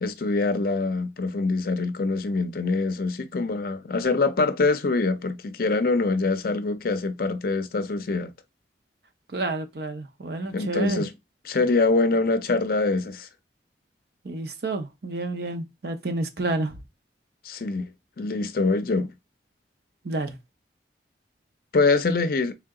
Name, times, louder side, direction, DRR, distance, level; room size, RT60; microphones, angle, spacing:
voice 1, 0.0-8.3 10.5-11.1 11.4-13.3 17.4-17.9 18.2-19.1 21.7-22.5, left 3 dB, 55° left, 0.5 m, -24 dB
voice 2, 9.3-11.1 14.2-16.8 20.0-20.4, right 2 dB, 60° right, 0.7 m, -29 dB
3.4 x 2.8 x 3.6 m
head